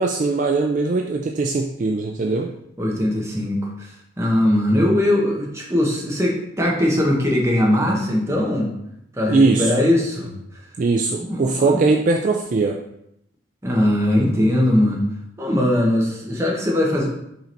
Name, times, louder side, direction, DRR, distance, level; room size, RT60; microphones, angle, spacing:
voice 1, 0.0-2.5 9.3-9.7 10.8-12.8, right 3 dB, 40° right, 2 dB, 0.3 m, -20 dB
voice 2, 2.8-8.7 9.1-10.6 11.1-11.8 13.6-15.1 15.4-17.1, left 1 dB, 15° right, -2 dB, 1.1 m, -20 dB
5.4 x 3.9 x 4.4 m, 0.79 s
head